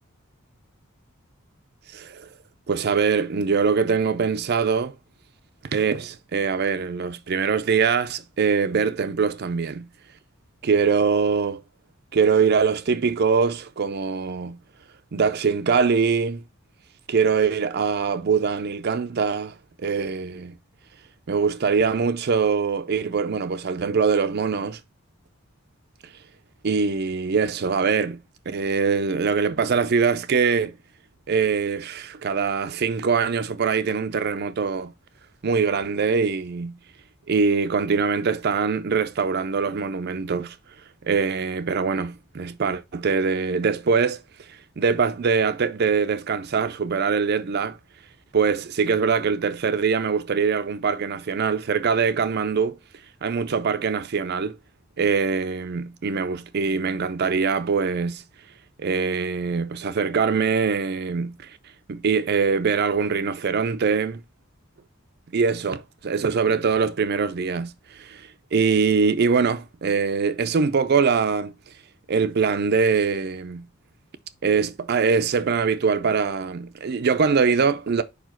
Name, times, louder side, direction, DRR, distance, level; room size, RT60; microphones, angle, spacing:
voice 1, 1.9-2.3 2.7-5.0 5.6-9.9 10.6-11.6 12.1-14.6 15.1-16.4 17.1-20.5 21.3-24.8 26.6-28.2 28.5-30.8 31.3-34.9 35.4-36.8 37.3-40.6 41.0-44.2 44.5-47.8 48.3-52.8 53.2-54.6 55.0-58.2 58.8-61.6 61.9-64.2 65.3-71.5 72.1-73.7 74.4-78.0, right 5 dB, 50° right, 0.5 m, -23 dB
4.9 x 4.7 x 4.4 m
head